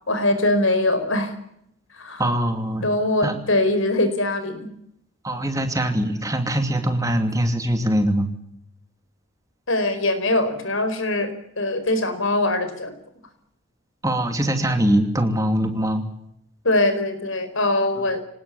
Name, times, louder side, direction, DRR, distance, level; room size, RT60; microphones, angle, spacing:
voice 1, 0.1-1.3 2.0-2.2 2.8-4.7 9.7-12.9 16.6-18.2, left 2 dB, 70° left, 10 dB, 4.8 m, -22 dB
voice 2, 2.2-2.9 3.2-3.3 5.2-8.3 14.0-16.0, right 1 dB, 15° right, 6 dB, 2.7 m, -22 dB
26.0 x 19.0 x 8.5 m, 0.75 s
head